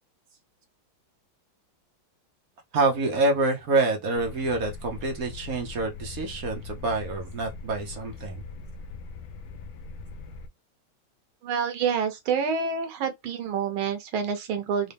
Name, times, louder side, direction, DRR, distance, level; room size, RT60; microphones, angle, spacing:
voice 1, 2.7-8.4, right 2 dB, 55° right, 1.1 m, -26 dB
sound 1, 4.1-10.5, left 4 dB, 85° left, 0.8 m, -41 dB
voice 2, 11.4-14.9, right 6 dB, 80° right, 1.6 m, -27 dB
4.0 x 2.2 x 3.4 m
omnidirectional pair, 2.2 m